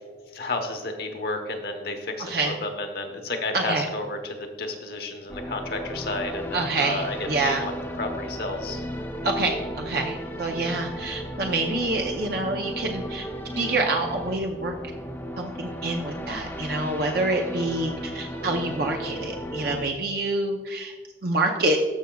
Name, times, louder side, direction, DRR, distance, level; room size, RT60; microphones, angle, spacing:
voice 1, 0.3-8.8, left 2 dB, 55° left, 4 dB, 1.1 m, -31 dB
voice 2, 2.2-2.6 3.5-3.9 6.5-7.6 9.2-13.3 13.5-14.7 15.4-20.9 21.2-21.8, right 2 dB, 55° right, 2 dB, 0.7 m, -27 dB
sound 1, 5.3-19.8, equal, 15° left, 0.8 m, -35 dB
13.5 x 6.2 x 2.3 m, 1.4 s
head